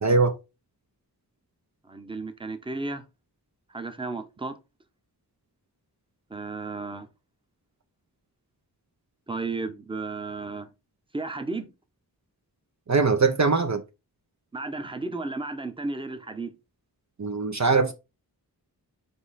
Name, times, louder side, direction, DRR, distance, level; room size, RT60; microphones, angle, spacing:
voice 1, 0.0-0.4 12.9-13.8 17.2-17.9, right 4 dB, 45° right, 0.7 m, -21 dB
voice 2, 1.8-3.0 3.7-4.6 6.3-7.1 9.3-10.7 11.1-11.7 14.5-16.5, right 3 dB, 15° right, 0.9 m, -33 dB
5.4 x 4.3 x 4.1 m
wide cardioid pair, 70°, 40 cm